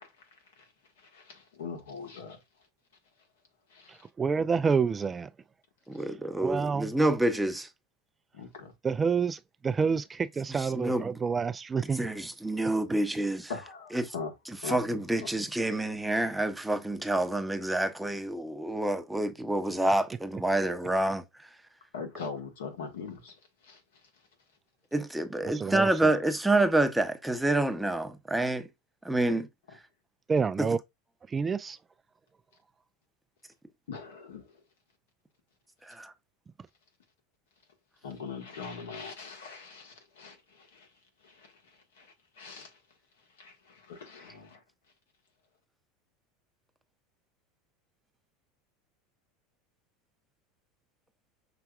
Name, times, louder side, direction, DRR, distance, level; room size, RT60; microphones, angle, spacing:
voice 1, 0.0-2.7 3.7-4.1 8.3-8.7 13.5-14.3 14.6-14.8 15.1-15.3 21.9-24.3 29.2-29.4 33.9-34.6 38.0-42.8 43.2-44.6, left 5 dB, 85° left, 1.5 m, -42 dB
voice 2, 4.2-5.3 6.4-6.9 8.8-12.1 25.4-26.1 30.3-30.8 31.3-31.8, right 5 dB, 25° right, 0.3 m, -28 dB
voice 3, 5.9-7.7 10.5-11.1 12.0-13.5 14.7-21.2 24.9-28.7 29.0-29.5 35.9-36.1, right 1 dB, 5° right, 0.8 m, -28 dB
5.8 x 3.4 x 2.4 m
hypercardioid pair, 90°, 0 cm